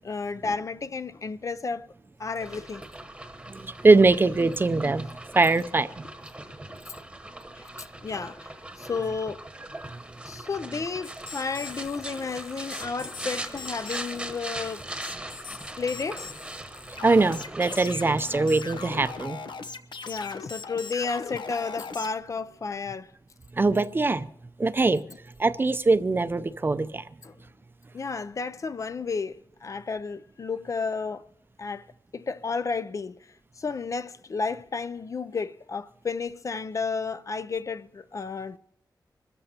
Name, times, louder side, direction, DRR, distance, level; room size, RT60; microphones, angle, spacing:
voice 1, 0.0-1.9 2.2-2.8 7.6-7.7 8.0-9.5 10.3-14.8 15.8-16.3 20.1-23.1 27.2-27.5 27.9-31.2 31.6-31.9 32.1-33.3 33.6-38.6, left 4 dB, 45° left, 0.4 m, -32 dB
sound 1, 2.4-19.3, right 1 dB, 10° right, 1.1 m, -40 dB
voice 2, 3.5-5.1 5.3-6.0 9.8-10.0 17.0-19.4 23.6-24.3 24.6-25.0 25.4-27.0, right 3 dB, 30° right, 0.5 m, -22 dB
sound 2, 11.0-22.1, left 5 dB, 90° left, 0.9 m, -40 dB
25.5 x 13.5 x 2.8 m
wide cardioid pair, 165°, 8 cm